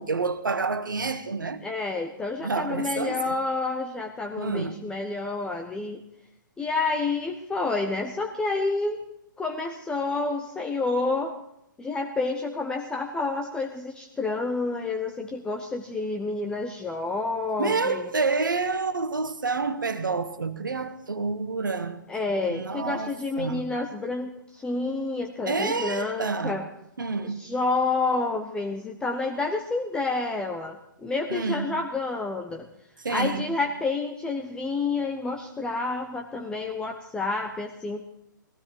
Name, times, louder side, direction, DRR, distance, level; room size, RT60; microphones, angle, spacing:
voice 1, 0.0-1.6 2.4-3.4 4.4-4.8 17.6-22.0 22.5-23.7 25.4-26.6 27.0-27.5 31.3-31.7 33.0-33.4, right 4 dB, 70° right, 1.5 m, -28 dB
voice 2, 1.6-6.0 6.6-9.0 9.4-11.4 11.8-18.1 22.1-26.7 27.2-32.7 33.1-38.0, left 3 dB, 10° left, 1.1 m, -29 dB
18.0 x 16.0 x 4.8 m
figure-of-eight pair, 120°, 11 cm